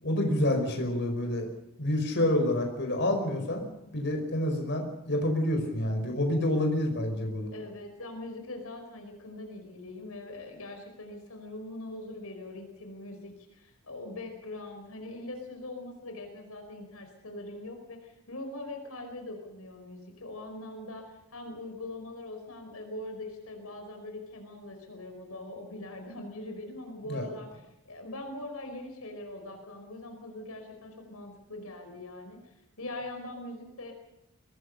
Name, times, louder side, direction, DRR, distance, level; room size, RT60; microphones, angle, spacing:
voice 1, 0.0-1.5 1.8-7.5 27.1-27.2, left 1 dB, 50° left, 3 dB, 5.2 m, -28 dB
voice 2, 7.5-27.5 27.8-33.9, left 2 dB, 75° left, 4 dB, 4.8 m, -42 dB
23.5 x 19.5 x 6.7 m, 0.89 s
head